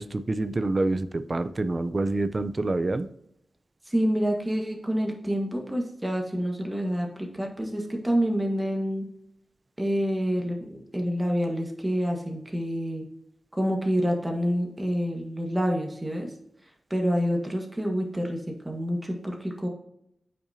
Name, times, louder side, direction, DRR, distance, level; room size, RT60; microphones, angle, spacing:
voice 1, 0.0-3.1, right 2 dB, 35° right, 12 dB, 0.5 m, -27 dB
voice 2, 3.8-9.1 9.8-13.1 13.5-16.3 16.9-19.7, equal, 15° right, 1 dB, 1.5 m, -27 dB
8.6 x 6.0 x 2.8 m, 0.76 s
wide cardioid pair, 95°, 0 cm